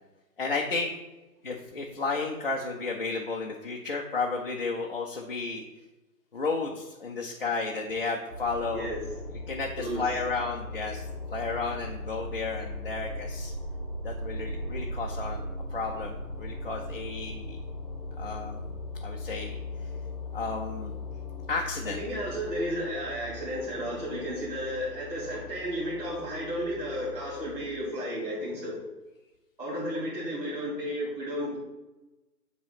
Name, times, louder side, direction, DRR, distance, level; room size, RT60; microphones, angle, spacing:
voice 1, 0.4-0.9 1.4-5.6 6.3-8.9 9.5-11.0 11.3-13.5 14.0-15.4 15.7-17.6 18.2-18.7 19.0-19.6 20.3-21.0 21.5-22.0, left 4 dB, 40° left, -1 dB, 0.5 m, -32 dB
sound 1, 8.3-27.7, left 2 dB, 10° left, 0.9 m, -39 dB
voice 2, 9.8-10.2 21.8-28.8 29.6-31.6, equal, 10° right, -11 dB, 1.6 m, -33 dB
7.6 x 3.0 x 5.8 m, 1.1 s
hypercardioid pair, 155°, 48 cm